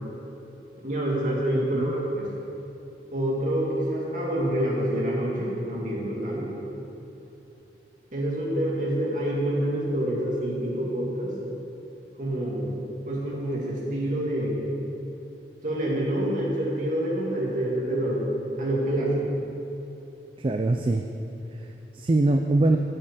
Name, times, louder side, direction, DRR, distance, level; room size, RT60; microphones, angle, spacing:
voice 1, 0.8-2.3 3.1-6.5 8.1-11.3 12.2-12.7 13.0-14.6 15.6-18.3 18.6-19.2, right 1 dB, 45° right, -4 dB, 2.2 m, -27 dB
voice 2, 1.5-1.9 20.4-21.0 21.5-22.8, right 2 dB, 30° right, 5 dB, 0.4 m, -23 dB
9.0 x 6.5 x 8.2 m, 2.9 s
head